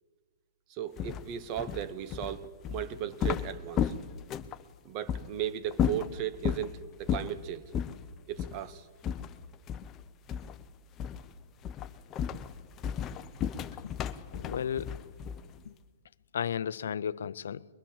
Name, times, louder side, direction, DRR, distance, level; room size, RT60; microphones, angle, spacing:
voice 1, 0.7-3.9 4.8-7.6 8.3-8.9, right 10 dB, 35° right, 1.1 m, -36 dB
sound 1, 1.0-4.6 5.1-5.3 5.7-6.7 7.1-7.4 7.7-8.0 8.4-8.6 9.0-10.0 10.3-10.6 11.0-11.3 11.6-15.6, left 8 dB, 25° left, 0.7 m, -33 dB
voice 2, 14.3-15.0 15.7-15.8 16.3-17.7, left 8 dB, 80° left, 0.6 m, -34 dB
22.5 x 20.5 x 7.3 m
hypercardioid pair, 145°, 0 cm